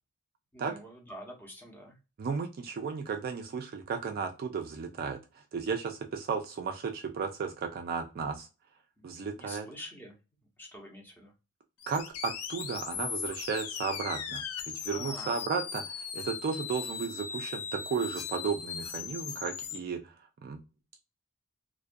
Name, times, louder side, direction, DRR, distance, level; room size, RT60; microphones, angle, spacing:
voice 1, 0.5-2.0 9.0-10.1 10.6-11.3 14.9-15.3, equal, 10° left, 0 dB, 0.7 m, -47 dB
voice 2, 2.2-8.5 9.0-9.7 11.9-20.2 20.4-20.6, right 5 dB, 45° right, 4 dB, 0.3 m, -34 dB
sound 1, 11.8-19.8, left 7 dB, 70° left, 0.5 m, -38 dB
2.3 x 2.2 x 2.5 m, 0.28 s
head